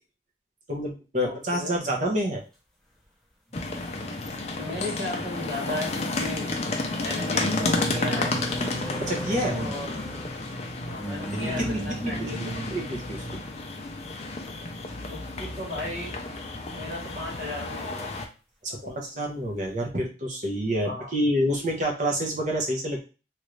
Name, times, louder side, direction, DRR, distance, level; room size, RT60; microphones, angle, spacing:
voice 1, 0.7-2.4 9.0-9.6 11.4-13.2 18.6-23.0, equal, 45° right, 0 dB, 0.9 m, -28 dB
voice 2, 1.2-1.7 4.6-6.5 7.0-8.4 9.5-10.0 10.8-12.6 15.1-16.4 16.7-18.1 18.7-19.0 20.8-21.1, left 2 dB, 65° right, -2 dB, 1.4 m, -36 dB
sound 1, 3.5-18.2, left 2 dB, 35° left, 0.5 m, -32 dB
sound 2, 3.5-3.6 5.8-13.5 14.6-14.8 15.1-15.3, right 1 dB, ahead, 0.7 m, -36 dB
3.1 x 2.5 x 3.1 m, 0.32 s
head